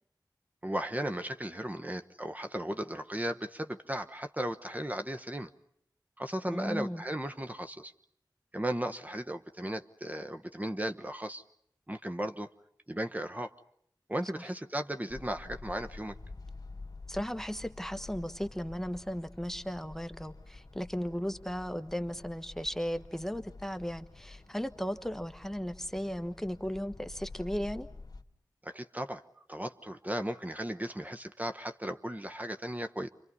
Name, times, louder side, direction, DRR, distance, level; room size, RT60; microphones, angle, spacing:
voice 1, 0.6-5.5 6.2-7.9 8.5-11.4 11.9-12.5 12.9-13.5 14.1-16.2 28.6-29.2 29.5-33.1, right 1 dB, 20° right, 7 dB, 1.2 m, -36 dB
voice 2, 6.5-7.0 17.1-27.9, equal, 5° left, 9 dB, 1.3 m, -36 dB
sound 1, 15.1-28.2, left 3 dB, 55° left, 2.0 m, -49 dB
29.5 x 25.0 x 5.5 m, 0.70 s
wide cardioid pair, 50°, 8 cm